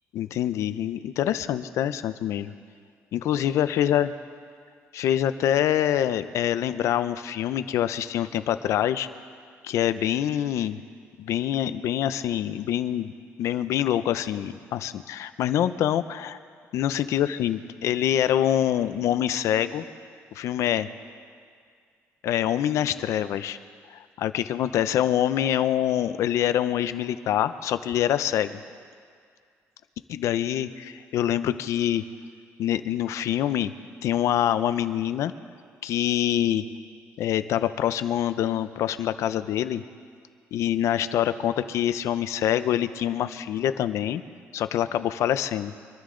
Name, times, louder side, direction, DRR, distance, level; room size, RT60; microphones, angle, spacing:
voice 1, 0.1-2.5 3.1-4.1 4.9-9.1 9.6-10.8 11.2-13.1 13.4-16.4 16.7-19.8 20.3-20.9 22.2-23.6 23.9-28.6 30.1-32.0 32.6-33.7 34.0-35.3 35.8-36.6 37.2-39.8 40.5-44.2 44.5-45.7, left 11 dB, 75° left, 12 dB, 0.6 m, -25 dB
25.0 x 13.0 x 3.8 m, 2.1 s
cardioid pair, 130°, 5 cm